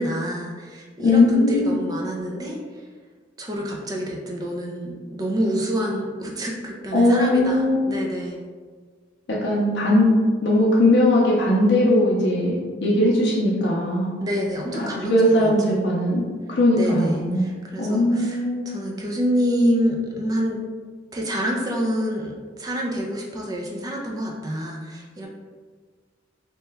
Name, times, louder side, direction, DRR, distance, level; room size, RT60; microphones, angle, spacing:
voice 1, 0.0-2.8 3.4-8.4 14.2-15.8 16.7-20.6 21.1-25.3, equal, 20° right, -1 dB, 0.3 m, -27 dB
voice 2, 1.0-1.8 6.9-7.8 9.4-10.1 10.4-14.2 14.7-16.2 16.5-17.5 17.8-18.6, left 1 dB, 65° left, -4 dB, 0.5 m, -19 dB
2.9 x 2.2 x 3.3 m, 1.6 s
head